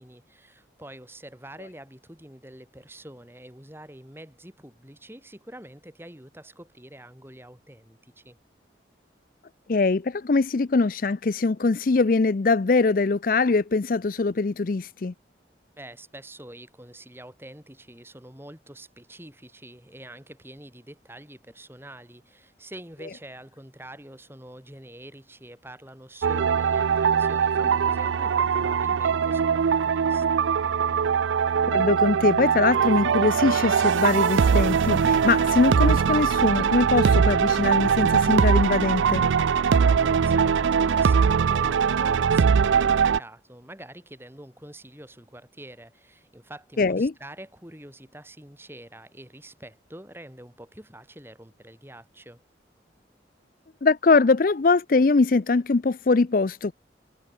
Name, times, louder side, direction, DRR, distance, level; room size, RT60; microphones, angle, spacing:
voice 1, 0.0-8.4 15.8-30.4 39.7-52.4, right 1 dB, 10° right, 4.2 m, -45 dB
voice 2, 9.7-15.1 31.7-39.2 46.8-47.1 53.8-56.7, left 3 dB, 50° left, 0.5 m, -22 dB
sound 1, 26.2-43.2, right 6 dB, 90° right, 0.4 m, -21 dB
head